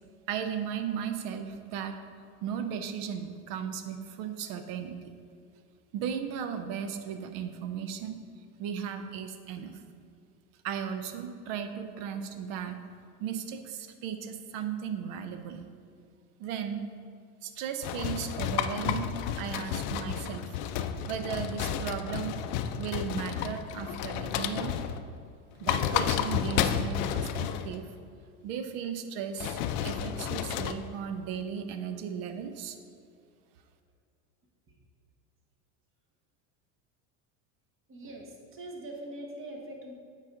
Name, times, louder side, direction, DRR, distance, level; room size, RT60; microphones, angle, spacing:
voice 1, 0.3-2.0 2.4-4.9 5.9-8.2 8.6-9.8 10.6-12.8 13.2-15.6 16.4-16.9 17.4-20.6 21.0-22.4 22.8-24.8 25.6-27.9 28.4-32.8, right 8 dB, 60° right, 8 dB, 0.8 m, -36 dB
sound 1, 17.8-25.1 25.5-27.8 29.4-30.7, left 9 dB, 55° left, 0.5 m, -31 dB
voice 2, 37.9-39.9, right 1 dB, 30° right, 1 dB, 1.3 m, -42 dB
8.3 x 4.9 x 3.8 m, 2.4 s
supercardioid pair, 105°, 43 cm